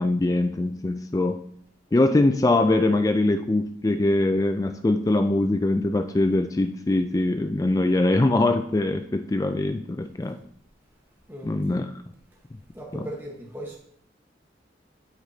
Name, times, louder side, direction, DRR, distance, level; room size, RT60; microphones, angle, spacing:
voice 1, 0.0-1.4 1.9-10.4 11.4-11.9 12.9-13.0, left 2 dB, 20° left, 0.3 m, -22 dB
voice 2, 12.7-13.8, right 1 dB, 10° right, 1.2 m, -38 dB
9.2 x 8.2 x 2.8 m
head